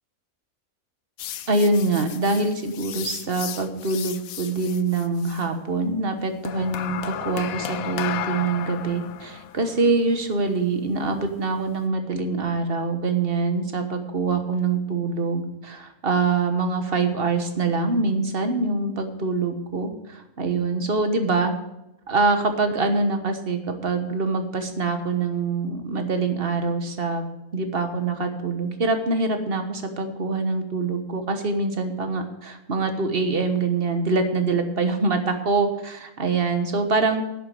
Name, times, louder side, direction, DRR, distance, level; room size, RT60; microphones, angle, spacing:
sound 1, 1.2-5.5 6.4-11.8, left 11 dB, 70° left, 1.1 m, -35 dB
voice 1, 1.5-21.5 22.1-27.2 27.5-37.2, right 3 dB, 40° right, 7 dB, 1.3 m, -24 dB
11.0 x 7.5 x 6.9 m, 0.89 s
omnidirectional pair, 1.6 m